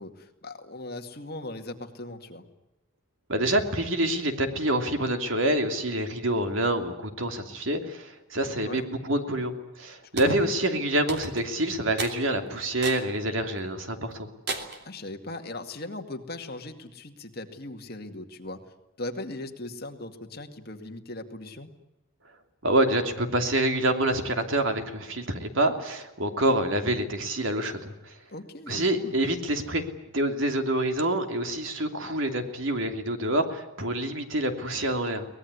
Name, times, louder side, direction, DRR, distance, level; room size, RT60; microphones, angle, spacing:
voice 1, 0.0-2.4 8.4-8.8 10.3-10.4 14.8-18.6 19.0-21.7 28.3-29.2, left 2 dB, 45° left, 5 dB, 2.2 m, -39 dB
voice 2, 3.3-14.3 22.6-28.1 28.7-29.8 30.1-35.3, right 1 dB, 65° right, 6 dB, 3.0 m, -27 dB
sound 1, 10.2-10.4 11.1-11.5 12.0-12.2 12.8-13.1 13.6-13.7 14.5-14.9, right 3 dB, 50° right, 3.1 m, -33 dB
23.5 x 19.5 x 9.8 m, 0.94 s
head